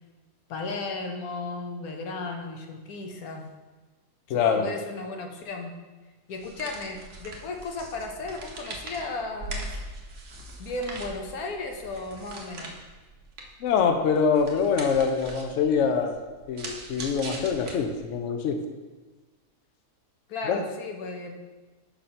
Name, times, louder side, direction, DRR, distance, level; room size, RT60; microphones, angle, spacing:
voice 1, 0.5-3.5 4.3-5.7 6.3-9.8 10.6-12.7 20.3-21.6, left 3 dB, 80° left, 3 dB, 1.3 m, -35 dB
voice 2, 4.3-4.7 13.6-16.1 16.5-18.6 20.5-20.6, left 6 dB, 65° left, 5 dB, 0.9 m, -24 dB
sound 1, 6.3-18.2, right 2 dB, 60° right, 1.2 m, -41 dB
5.7 x 5.2 x 4.2 m, 1.2 s
omnidirectional pair, 1.5 m